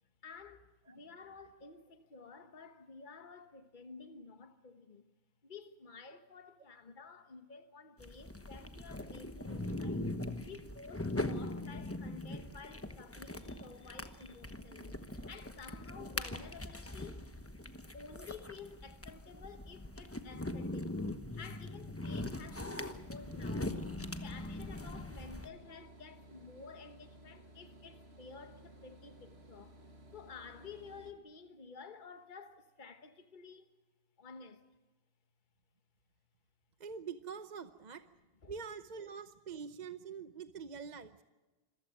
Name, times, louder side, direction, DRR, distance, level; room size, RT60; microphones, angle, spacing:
voice 1, 0.2-5.0 5.4-10.1 10.4-17.3 17.9-20.9 21.4-29.8 30.1-33.7 34.2-34.6 38.4-38.5, left 5 dB, 50° left, 1.4 m, -52 dB
sound 1, 8.0-25.5, left 1 dB, 15° left, 1.0 m, -41 dB
sound 2, 22.5-31.1, right 1 dB, 90° right, 2.5 m, -57 dB
voice 2, 36.8-38.0 38.5-41.2, right 6 dB, 45° right, 0.9 m, -45 dB
26.5 x 15.0 x 8.9 m
omnidirectional pair, 1.1 m